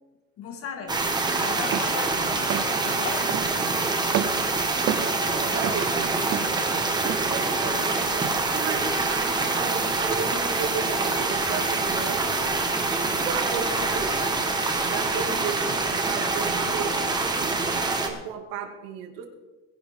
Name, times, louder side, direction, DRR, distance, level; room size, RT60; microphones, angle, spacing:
voice 1, 0.4-1.1 1.4-2.6 2.8-3.6, left 6 dB, 40° left, 6 dB, 1.8 m, -37 dB
mountain stream, 0.9-18.1, right 3 dB, 10° right, 1.3 m, -25 dB
sound 1, 1.7-2.0 2.5-2.8 3.3-3.6 4.0-5.1 5.5-6.6 7.1-7.4, right 12 dB, 40° right, 0.6 m, -30 dB
voice 2, 4.7-6.6 7.3-12.6 13.1-14.4 14.8-17.5 18.0-19.3, right 6 dB, 85° right, 4 dB, 2.4 m, -35 dB
21.5 x 10.5 x 3.7 m, 1.2 s
cardioid pair, 165°, 34 cm